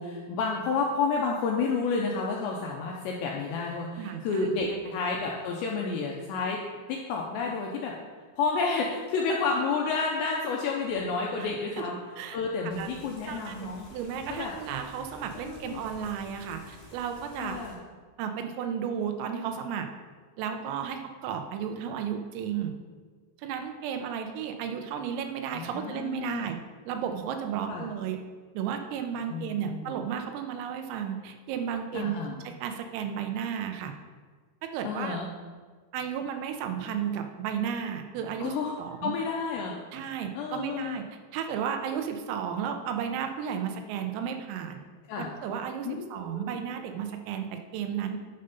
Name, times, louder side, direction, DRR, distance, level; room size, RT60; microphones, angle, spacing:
voice 1, 0.0-6.6 6.9-7.9 8.4-12.0 12.3-13.9 14.3-14.5 15.3-15.8 17.4-17.8 25.5-26.5 27.7-27.9 29.3-29.9 31.9-32.3 34.8-35.3 38.4-39.8 40.3-41.0 45.1-45.3 45.8-46.6, left 4 dB, 80° left, -1 dB, 2.5 m, -30 dB
voice 2, 4.0-4.5 4.9-5.0 11.4-11.5 11.8-11.9 12.2-12.4 12.8-12.9 13.3-17.6 18.2-19.9 20.4-22.7 23.4-26.6 26.9-28.2 28.5-33.9 34.6-35.2 35.9-39.1 39.9-41.0 41.3-44.8 45.2-48.2, right 8 dB, 85° right, 6 dB, 3.4 m, -33 dB
sound 1, 12.7-17.7, left 2 dB, 50° left, 4.6 m, -50 dB
10.5 x 5.5 x 5.3 m, 1.5 s
omnidirectional pair, 5.9 m